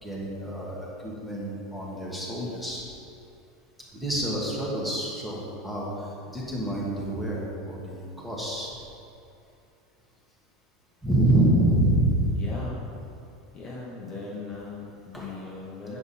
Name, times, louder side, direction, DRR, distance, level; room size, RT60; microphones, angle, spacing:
voice 1, 0.0-2.8 4.0-5.9 6.3-8.7 11.0-12.4 15.1-15.3, right 1 dB, ahead, -5 dB, 1.4 m, -26 dB
voice 2, 12.3-12.9 13.5-16.0, left 3 dB, 25° left, -4 dB, 1.0 m, -38 dB
9.5 x 6.8 x 4.2 m, 2.6 s
supercardioid pair, 175°, 3 cm